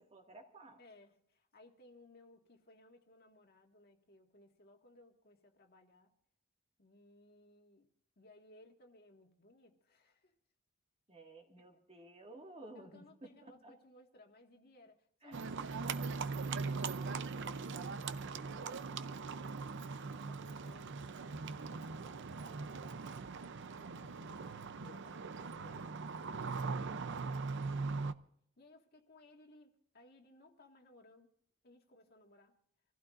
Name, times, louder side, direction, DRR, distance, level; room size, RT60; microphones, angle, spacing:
voice 1, 0.0-0.8 11.1-13.3 13.6-13.7 15.2-15.5, right 2 dB, 30° right, 2.0 m, -54 dB
voice 2, 0.8-6.1 6.8-7.9 8.2-10.3 12.7-23.3 23.6-27.8 28.6-31.3 31.6-32.6, left 1 dB, 50° left, 1.8 m, -62 dB
Livestock farm animals working animals, 15.3-28.1, right 4 dB, 60° right, 0.6 m, -40 dB
26.0 x 16.0 x 2.5 m
head